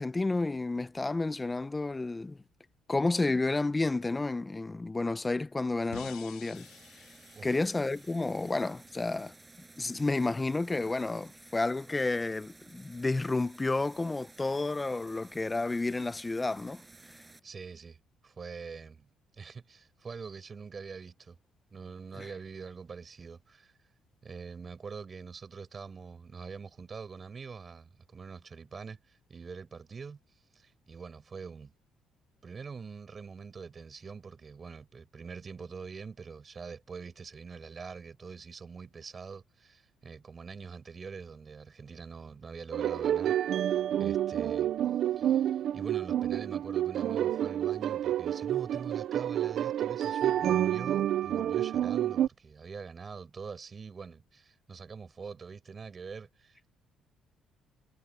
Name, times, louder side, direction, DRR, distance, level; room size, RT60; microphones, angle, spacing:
voice 1, 0.0-2.4 2.9-6.7 7.4-9.3 9.8-16.8 22.2-22.3, left 3 dB, 20° left, 0.7 m, -31 dB
sound 1, 5.9-9.0, left 14 dB, 85° left, 1.9 m, -51 dB
sound 2, 6.5-17.4, right 3 dB, 20° right, 7.5 m, -55 dB
voice 2, 17.4-18.0 18.2-19.1 19.4-21.4 21.7-23.8 24.2-30.2 30.5-31.7 32.4-44.7 45.2-56.7, right 5 dB, 35° right, 7.6 m, -44 dB
sound 3, 42.7-52.3, right 11 dB, 65° right, 0.6 m, -29 dB
cardioid pair, 90°, 0 cm